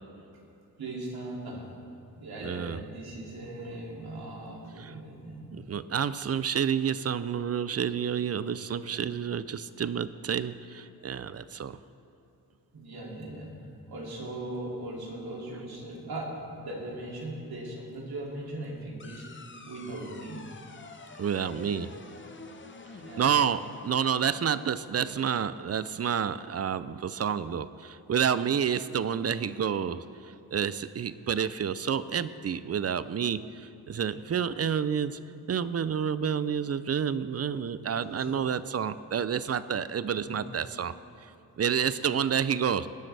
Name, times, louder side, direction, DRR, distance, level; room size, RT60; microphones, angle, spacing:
voice 1, 0.8-1.7 2.1-5.5 8.3-8.4 8.9-9.0 12.7-20.4 21.6-21.9 23.0-23.3 38.1-38.4 40.2-40.5, right 1 dB, 90° right, -3 dB, 2.8 m, -39 dB
voice 2, 2.4-2.8 4.8-4.9 5.5-11.8 21.2-21.9 23.2-30.0 30.5-33.5 33.9-35.2 35.5-40.9 41.6-42.9, right 8 dB, 45° right, 15 dB, 0.5 m, -29 dB
sound 1, 19.0-24.0, left 3 dB, 30° left, 0.8 m, -47 dB
20.0 x 12.0 x 3.4 m, 2.8 s
wide cardioid pair, 90°, 36 cm